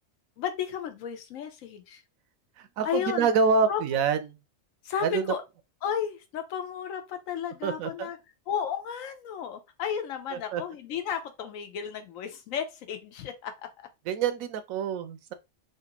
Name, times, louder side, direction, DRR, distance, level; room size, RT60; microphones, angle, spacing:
voice 1, 0.4-2.0 2.8-3.3 3.7-3.8 4.8-5.4 5.8-8.2 8.5-13.7, left 8 dB, 80° left, 1.0 m, -33 dB
voice 2, 2.8-4.3 5.0-5.3 7.6-8.1 10.3-10.6 14.1-15.3, right 5 dB, 85° right, 1.0 m, -26 dB
3.3 x 2.5 x 2.9 m
omnidirectional pair, 1.4 m